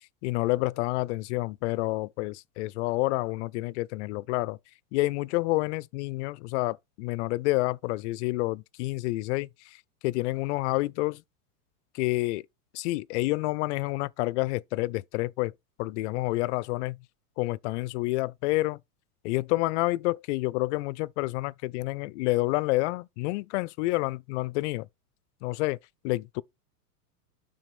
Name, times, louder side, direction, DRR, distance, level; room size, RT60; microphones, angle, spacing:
voice 1, 0.2-4.6 4.9-9.5 10.0-11.2 11.9-12.4 12.7-15.5 15.8-17.0 17.4-18.8 19.2-24.9 25.4-25.8 26.0-26.4, left 21 dB, 50° left, 0.5 m, -28 dB
6.0 x 4.1 x 5.9 m
hypercardioid pair, 105°, 46 cm